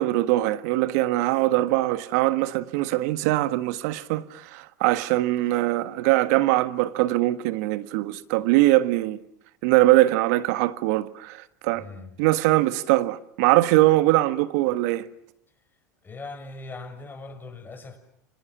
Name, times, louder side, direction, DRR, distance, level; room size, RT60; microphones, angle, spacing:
voice 1, 0.0-9.2 9.6-11.8 12.2-15.1, right 17 dB, 65° right, 1.5 m, -22 dB
voice 2, 11.7-12.2 16.0-18.0, left 3 dB, 20° left, 6.5 m, -40 dB
29.5 x 25.0 x 7.4 m
hypercardioid pair, 90°, 9 cm